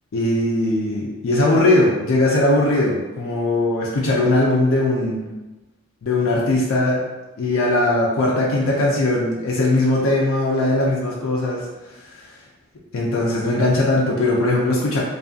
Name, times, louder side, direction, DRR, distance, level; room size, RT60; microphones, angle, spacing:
voice 1, 0.1-5.3 6.0-7.0 7.4-11.6 12.0-12.2 12.9-15.0, left 2 dB, 80° left, -3 dB, 0.4 m, -19 dB
2.6 x 2.5 x 2.4 m, 1.1 s
head